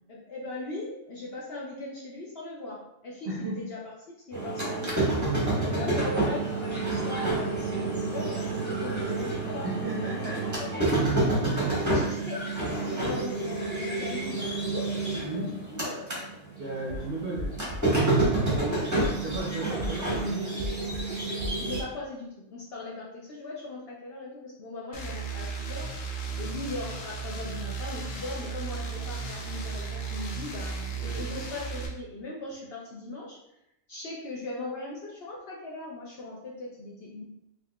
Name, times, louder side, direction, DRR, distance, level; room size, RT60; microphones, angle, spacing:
voice 1, 0.1-3.8 4.1-5.1 5.7-10.8 11.1-11.3 11.6-14.9 15.3-16.3 16.9-17.8 18.6-18.9 21.6-33.4 33.9-37.2, left 2 dB, 60° left, -4 dB, 0.7 m, -39 dB
voice 2, 3.3-3.6 5.7-6.0 9.6-10.4 11.5-11.8 15.2-15.5 16.6-17.5 19.2-20.7 26.3-26.5 31.0-31.3, right 2 dB, 55° right, -4 dB, 0.7 m, -35 dB
sound 1, 4.3-16.2 16.6-21.8, right 2 dB, 15° right, 0.7 m, -28 dB
sound 2, 16.8-17.0 17.4-17.8 18.2-18.6 19.0-19.4 19.8-20.2 20.6-21.0 21.4-21.8, equal, 90° right, 1.1 m, -36 dB
sound 3, 24.9-31.9, right 4 dB, 75° left, 1.0 m, -35 dB
4.1 x 2.5 x 2.2 m, 0.84 s
omnidirectional pair, 1.4 m